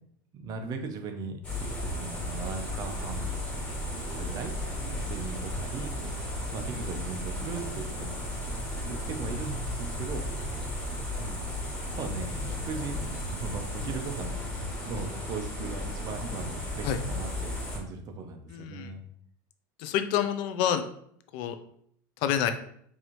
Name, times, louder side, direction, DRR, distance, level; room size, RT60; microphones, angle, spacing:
voice 1, 0.3-1.4 1.9-3.5 4.1-4.5 4.9-5.9 6.5-8.3 8.9-10.2 11.2-11.5 12.0-13.0 13.3-14.3 14.9-19.0, right 4 dB, 40° right, 5 dB, 0.7 m, -38 dB
sound 1, 1.4-17.8, left 1 dB, 10° left, 1.5 m, -34 dB
voice 2, 18.5-18.9 19.8-20.8 21.3-21.6 22.2-22.5, left 10 dB, 55° left, 8 dB, 0.5 m, -28 dB
4.7 x 2.7 x 3.0 m, 0.66 s
supercardioid pair, 130°, 11 cm